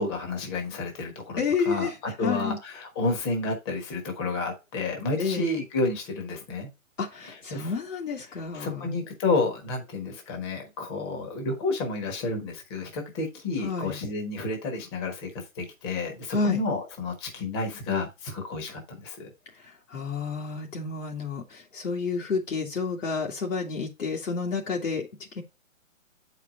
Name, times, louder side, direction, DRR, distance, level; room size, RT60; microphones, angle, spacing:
voice 1, 0.0-6.7 7.3-7.7 8.5-15.3 15.6-19.3, left 3 dB, 20° left, 1.4 m, -30 dB
voice 2, 1.4-2.0 2.2-2.6 5.2-5.5 7.0-8.9 13.6-14.0 16.3-16.6 19.5-25.1 25.3-25.4, left 4 dB, 65° left, 2.2 m, -30 dB
7.7 x 4.9 x 3.7 m
hypercardioid pair, 160°, 41 cm